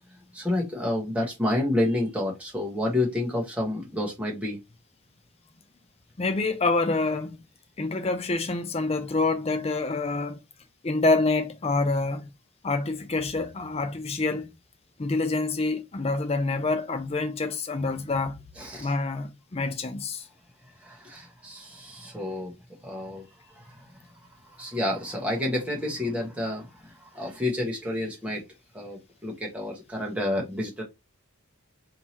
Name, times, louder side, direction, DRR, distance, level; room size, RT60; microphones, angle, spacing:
voice 1, 0.1-4.6 18.6-18.9 20.6-22.5 22.8-28.4 28.7-30.8, left 1 dB, 5° right, 1.2 m, -30 dB
voice 2, 6.2-7.4 7.8-10.4 10.8-12.3 12.6-14.5 15.0-18.4 18.8-20.3, left 3 dB, 25° left, 0.5 m, -27 dB
3.6 x 2.8 x 2.9 m
head